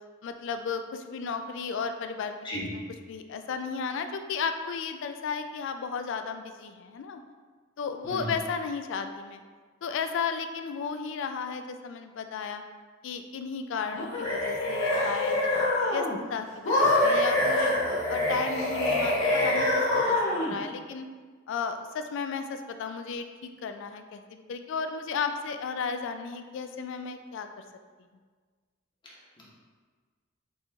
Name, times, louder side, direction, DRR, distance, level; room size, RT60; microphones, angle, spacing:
voice 1, 0.2-2.3 3.1-7.2 7.8-9.4 9.8-12.6 13.0-15.5 15.8-17.7 18.1-21.1 21.5-27.5, left 5 dB, 65° left, 8 dB, 0.3 m, -34 dB
sound 1, 13.9-16.1 16.6-20.5, left 1 dB, 85° left, 1.3 m, -25 dB
voice 2, 29.0-29.4, equal, 25° left, -5 dB, 1.0 m, -37 dB
4.1 x 2.9 x 3.4 m, 1.5 s
head